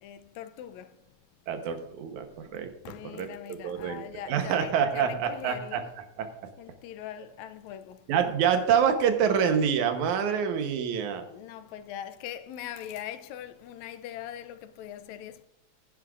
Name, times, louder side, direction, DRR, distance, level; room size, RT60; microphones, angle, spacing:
voice 1, 0.0-0.9 2.9-5.8 6.6-8.0 11.3-15.4, left 10 dB, 80° left, 1.8 m, -41 dB
voice 2, 1.5-2.3 2.5-2.7 3.0-5.8 6.2-6.3 8.1-11.2, right 7 dB, 85° right, 2.4 m, -26 dB
15.5 x 9.8 x 2.4 m
omnidirectional pair, 3.4 m